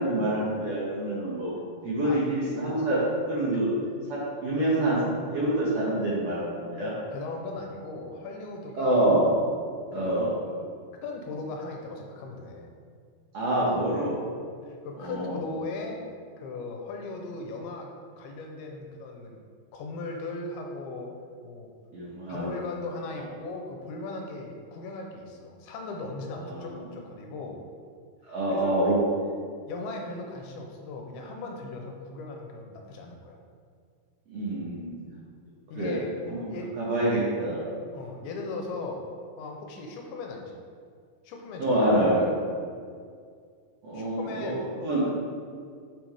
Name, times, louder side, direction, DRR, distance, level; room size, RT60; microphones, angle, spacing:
voice 1, 0.0-1.5 1.8-3.0 3.2-3.7 4.1-5.0 5.3-6.9 8.8-9.2 9.9-10.3 13.3-14.1 15.0-15.4 21.9-22.5 26.4-26.8 28.3-29.3 34.3-34.9 35.7-36.0 36.3-37.6 41.6-42.2 43.8-45.1, right 1 dB, 65° right, -8 dB, 1.7 m, -26 dB
voice 2, 7.1-9.1 10.0-10.7 11.0-12.7 14.6-16.0 16.4-17.9 18.2-19.4 19.7-21.1 21.4-21.7 22.3-27.6 28.5-28.7 29.7-33.4 35.7-36.1 36.4-36.7 37.9-39.0 39.4-40.6 41.3-41.9 43.9-44.7, left 3 dB, 85° left, 2 dB, 2.6 m, -38 dB
7.0 x 6.1 x 3.5 m, 2.1 s
omnidirectional pair, 4.5 m